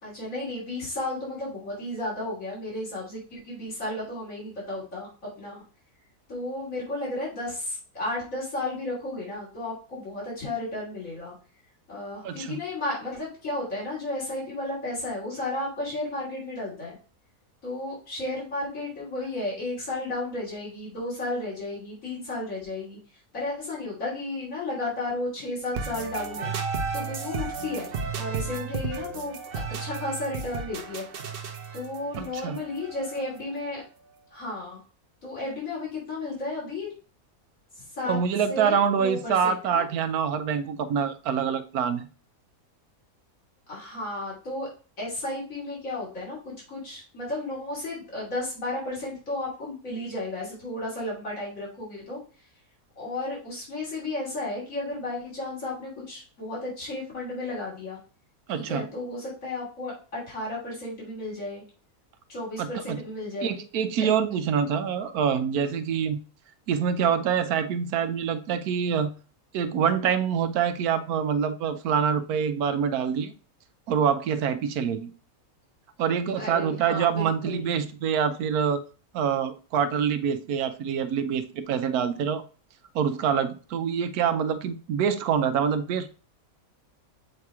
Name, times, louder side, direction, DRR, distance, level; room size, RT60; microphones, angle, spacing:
voice 1, 0.0-5.6 6.3-11.3 11.9-17.0 17.6-23.0 23.3-26.5 26.9-29.4 29.8-31.1 31.7-33.8 34.3-34.8 35.2-36.9 37.8-38.2 38.5-39.9 43.7-44.7 45.0-52.2 53.0-58.0 58.5-61.6 62.3-63.5 64.0-64.1 76.4-77.6, left 2 dB, 65° left, 3.4 m, -33 dB
voice 2, 12.2-12.6 32.2-32.6 38.0-42.1 58.5-58.8 62.6-63.0 63.4-66.2 66.7-69.1 69.5-73.3 73.9-75.1 76.0-78.8 79.1-82.4 82.9-86.1, right 7 dB, 85° right, 1.2 m, -25 dB
sound 1, 25.7-33.6, right 5 dB, 50° right, 0.8 m, -34 dB
7.6 x 2.9 x 4.7 m
omnidirectional pair, 1.5 m